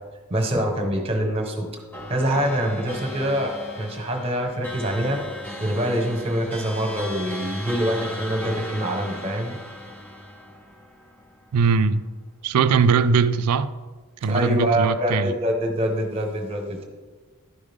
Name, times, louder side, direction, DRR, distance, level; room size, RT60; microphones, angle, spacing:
voice 1, 0.3-1.7 2.1-5.2 5.6-9.6 14.2-16.9, equal, 25° right, 1.2 m, -25 dB
sound 1, 1.9-11.6, left 1 dB, 10° left, 0.8 m, -37 dB
voice 2, 11.5-12.0 12.4-13.7 14.2-15.3, right 5 dB, 85° right, 0.4 m, -20 dB
11.5 x 5.1 x 3.5 m
head